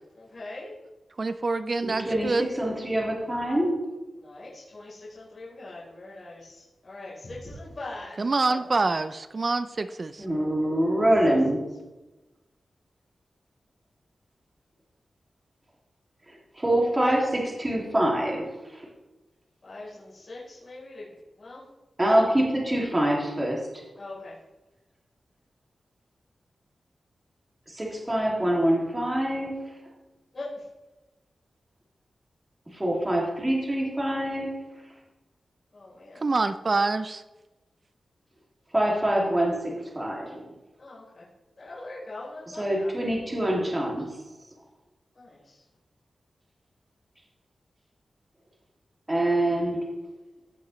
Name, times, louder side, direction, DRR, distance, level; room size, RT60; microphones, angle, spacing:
voice 1, 0.1-0.7 4.2-8.6 19.6-21.6 24.0-24.3 30.3-30.7 35.7-36.3 40.8-41.3 41.6-42.9 45.1-45.6, left 2 dB, 50° left, -8 dB, 3.7 m, -42 dB
voice 2, 1.2-2.5 8.2-10.2 36.2-37.2, right 3 dB, 45° right, 12 dB, 0.4 m, -26 dB
voice 3, 1.8-3.8 10.2-11.6 16.6-18.4 18.7-18.9 22.0-23.6 27.7-29.5 32.7-34.5 38.7-40.5 42.6-44.1 49.1-49.8, right 1 dB, 20° right, -3 dB, 2.3 m, -25 dB
16.0 x 5.9 x 3.1 m, 1.1 s
wide cardioid pair, 85°, 0 cm